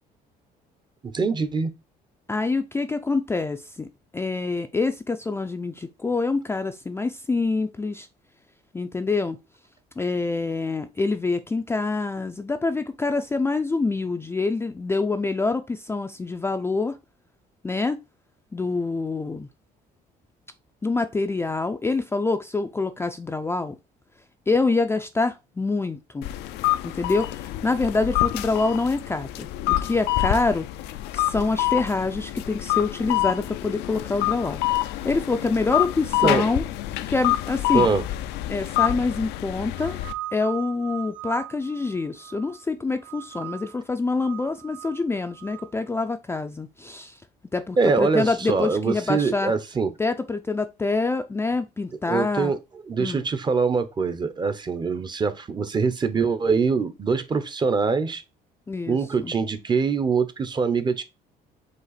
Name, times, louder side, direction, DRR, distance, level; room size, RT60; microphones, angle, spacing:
voice 1, 1.0-1.7 36.2-36.4 37.7-38.0 47.8-49.9 52.1-52.6 52.9-58.2 58.9-61.0, right 5 dB, 25° right, 0.6 m, -23 dB
voice 2, 2.3-3.9 4.1-8.1 8.7-9.4 10.0-17.0 17.6-18.0 18.5-19.5 20.8-23.8 24.5-26.3 26.8-30.7 31.1-36.6 37.1-37.9 38.5-40.0 40.3-47.2 47.5-49.5 50.0-52.5 53.0-53.2 58.7-59.3, left 3 dB, 15° left, 0.3 m, -26 dB
sound 1, 26.2-40.1, left 16 dB, 85° left, 0.4 m, -27 dB
sound 2, 39.7-42.6 43.0-43.8 44.1-45.7, right 15 dB, 50° right, 0.9 m, -39 dB
5.1 x 2.5 x 4.0 m
cardioid pair, 110°, 17 cm